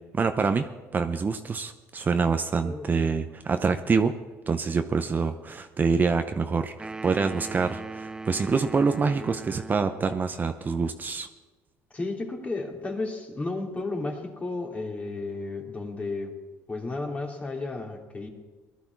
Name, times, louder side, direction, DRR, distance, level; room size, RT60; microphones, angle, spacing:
voice 1, 0.1-4.1 4.5-11.3, right 5 dB, 30° right, 7 dB, 0.8 m, -26 dB
sound 1, 6.8-10.2, right 3 dB, 15° right, 0.4 m, -39 dB
voice 2, 11.9-16.3 16.7-18.3, left 3 dB, 25° left, 1 dB, 2.9 m, -33 dB
19.0 x 11.5 x 4.7 m, 1.3 s
supercardioid pair, 85°, 6 cm